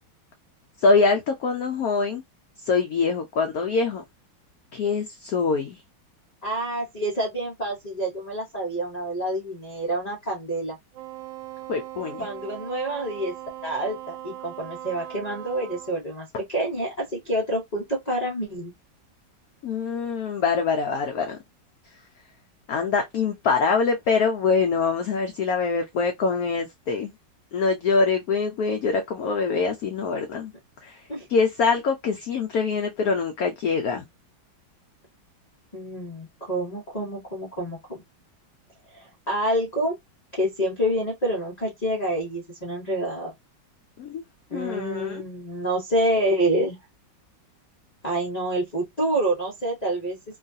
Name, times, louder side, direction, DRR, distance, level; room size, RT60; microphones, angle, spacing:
voice 1, 0.8-2.2 2.6-4.0 4.7-5.8 11.7-12.3 19.6-21.4 22.7-27.1 27.5-30.5 30.8-31.0 31.3-34.1 44.0-44.2 44.5-45.2, left 4 dB, 85° left, 0.8 m, -24 dB
voice 2, 6.4-10.8 12.2-13.3 13.6-18.7 31.1-31.3 35.7-38.0 38.9-39.9 40.3-43.3 44.5-46.8 48.0-50.2, right 1 dB, 55° left, 0.4 m, -27 dB
Wind instrument woodwind instrument, 10.9-16.0, right 14 dB, 75° right, 1.2 m, -39 dB
3.1 x 2.3 x 2.5 m
omnidirectional pair, 2.1 m